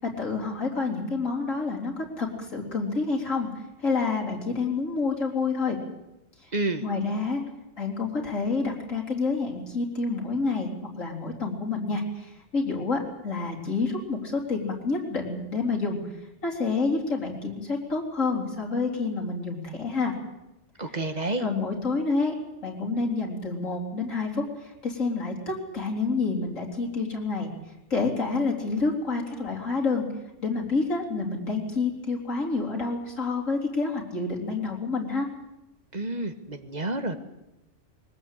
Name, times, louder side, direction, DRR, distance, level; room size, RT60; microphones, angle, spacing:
voice 1, 0.0-5.8 6.4-6.5 6.8-7.4 7.8-16.0 16.4-20.1 21.4-22.3 22.6-27.5 27.9-30.1 30.4-35.3, left 3 dB, 80° left, -1 dB, 3.9 m, -28 dB
voice 2, 6.5-6.8 20.8-21.4 35.9-37.2, right 2 dB, 35° right, 8 dB, 1.6 m, -29 dB
21.0 x 19.0 x 8.2 m, 0.92 s
omnidirectional pair, 1.3 m